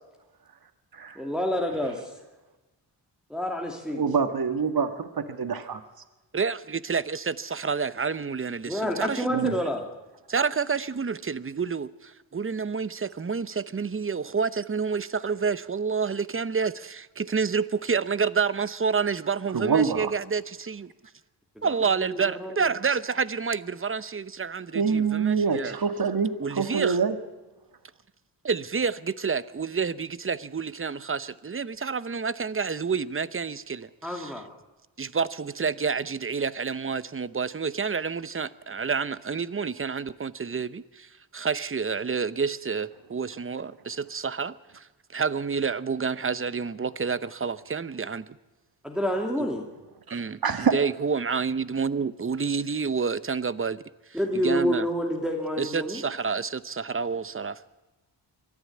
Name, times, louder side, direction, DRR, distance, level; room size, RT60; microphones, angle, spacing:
voice 1, 1.1-2.1 3.3-4.2 8.6-9.8 21.6-21.7 22.0-22.7 34.0-34.5 48.8-49.6 54.1-56.0, equal, ahead, 2.8 m, -28 dB
voice 2, 3.9-5.1 5.4-5.8 9.3-9.5 19.5-20.1 24.7-27.2 50.1-50.7, right 6 dB, 50° right, 1.7 m, -25 dB
voice 3, 6.3-9.5 10.3-20.9 21.6-25.7 26.4-27.0 28.4-34.3 35.0-48.3 50.1-50.4 50.7-54.9 55.6-57.8, right 5 dB, 30° right, 0.8 m, -29 dB
23.0 x 13.5 x 8.7 m
cardioid pair, 80°, 45 cm